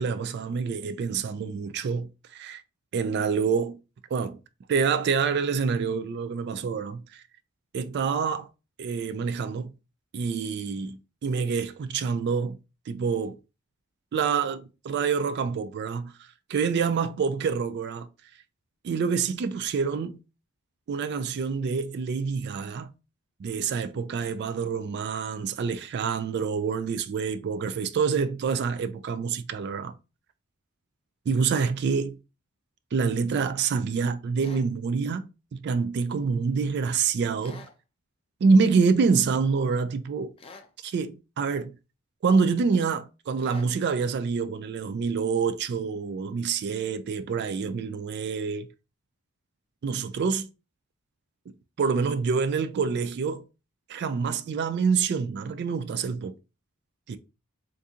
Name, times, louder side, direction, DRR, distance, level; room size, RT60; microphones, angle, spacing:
voice 1, 0.0-2.6 2.9-3.8 4.1-4.4 4.7-7.2 7.7-8.5 8.8-9.7 10.1-12.6 12.9-13.4 14.1-18.1 18.8-20.2 20.9-22.9 23.4-29.9 31.3-32.2 32.9-37.7 38.4-40.3 40.8-41.7 42.2-48.7 49.8-50.5 51.8-53.4 53.9-56.3 57.1-57.2, right 5 dB, 50° right, 0.3 m, -27 dB
sound 1, 34.4-34.7 37.4-37.8 40.4-40.7 43.4-43.7, left 4 dB, 25° left, 0.4 m, -47 dB
3.6 x 2.6 x 2.7 m
head